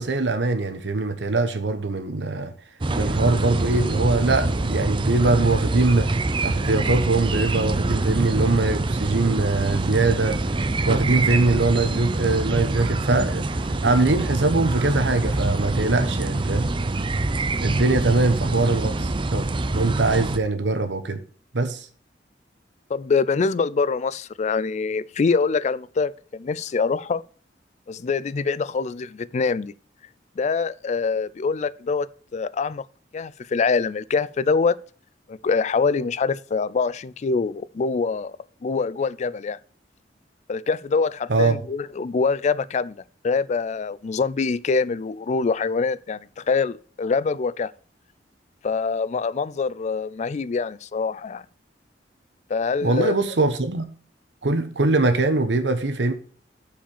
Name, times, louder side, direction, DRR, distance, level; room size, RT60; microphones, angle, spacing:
voice 1, 0.0-2.5 3.0-10.4 10.8-16.7 17.6-19.5 19.7-21.2 21.5-21.9 41.3-41.6 52.8-53.8 54.4-56.1, right 3 dB, 85° right, 1.0 m, -22 dB
sound 1, 2.8-20.4, right 2 dB, 30° right, 0.5 m, -25 dB
voice 2, 22.9-27.2 27.9-29.7 30.4-32.8 33.1-34.8 35.3-38.4 38.6-39.6 40.5-47.7 48.6-51.4 52.5-53.1, left 4 dB, 40° left, 0.3 m, -24 dB
7.1 x 5.0 x 7.2 m
head